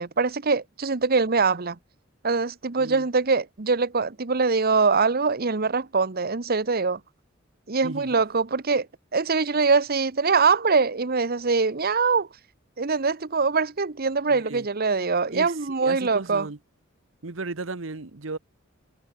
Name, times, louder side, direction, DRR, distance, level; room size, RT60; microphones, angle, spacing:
voice 1, 0.0-1.8 2.2-7.0 7.7-8.9 9.1-12.3 12.8-16.5, right 4 dB, 50° right, 1.0 m, -23 dB
voice 2, 7.8-8.2 14.3-14.7 15.3-16.6 17.2-18.4, right 3 dB, 70° right, 1.2 m, -35 dB
head